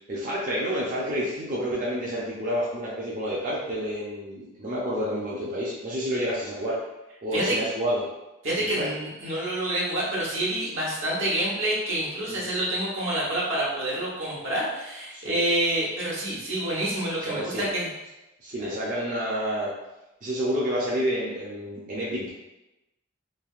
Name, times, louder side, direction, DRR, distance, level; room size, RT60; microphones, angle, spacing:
voice 1, 0.1-6.8 7.2-8.1 8.7-8.8 12.3-12.5 15.1-15.4 17.3-17.7 18.4-19.7 20.2-22.3, equal, 40° right, -7 dB, 0.5 m, -29 dB
voice 2, 8.4-17.9 18.6-18.7, right 1 dB, 75° right, -5 dB, 1.0 m, -27 dB
3.2 x 2.6 x 2.4 m, 0.98 s
head